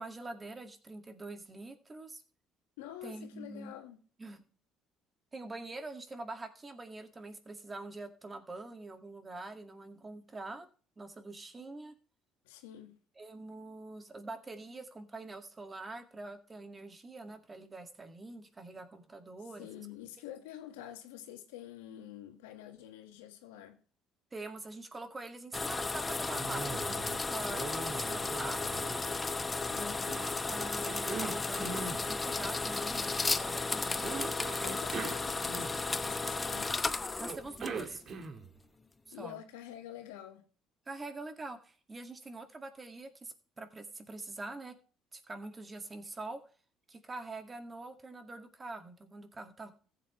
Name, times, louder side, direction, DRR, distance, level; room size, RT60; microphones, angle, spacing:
voice 1, 0.0-2.2 3.0-3.8 4.2-4.4 5.3-10.7 11.0-12.0 13.2-19.7 24.3-28.9 29.7-30.0 30.4-34.1 37.2-38.0 39.1-39.4 40.9-44.7 45.1-46.4 46.9-49.7, right 2 dB, 25° right, 2.0 m, -45 dB
voice 2, 2.8-4.0 12.4-13.0 19.6-23.8 29.7-30.2 34.6-36.8 39.1-40.4, left 12 dB, 90° left, 1.6 m, -47 dB
sound 1, 25.5-38.1, left 3 dB, 25° left, 0.8 m, -34 dB
Cough, 26.3-27.2 27.5-29.5 30.1-32.0 34.0-36.0 37.2-38.5, right 5 dB, 50° right, 1.6 m, -41 dB
15.0 x 7.8 x 3.1 m
supercardioid pair, 70°, 0 cm